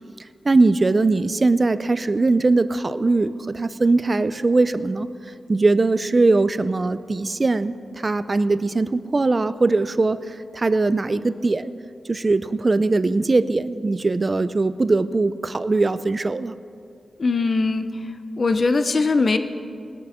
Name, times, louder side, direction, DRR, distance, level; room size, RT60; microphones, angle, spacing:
voice 1, 0.4-5.1 5.5-11.7 12.1-16.5, right 3 dB, 35° right, 13 dB, 0.5 m, -20 dB
voice 2, 17.2-17.9 18.4-19.4, left 3 dB, 50° left, 9 dB, 0.6 m, -20 dB
20.0 x 6.7 x 5.0 m, 2.4 s
cardioid pair, 80°, 0 cm